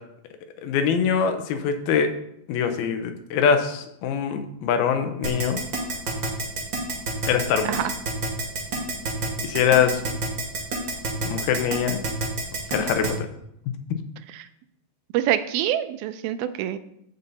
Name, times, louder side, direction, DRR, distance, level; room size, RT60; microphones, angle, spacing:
voice 1, 0.6-2.1 2.5-5.6 7.3-7.7 9.4-10.0 11.2-12.0 12.7-13.3, left 7 dB, 90° left, 7 dB, 2.8 m, -23 dB
Keyboard (musical), 5.2-13.1, right 3 dB, 40° right, 2.0 m, -28 dB
voice 2, 15.1-16.8, right 12 dB, 85° right, 12 dB, 2.4 m, -25 dB
13.5 x 5.6 x 4.0 m, 0.77 s
omnidirectional pair, 4.2 m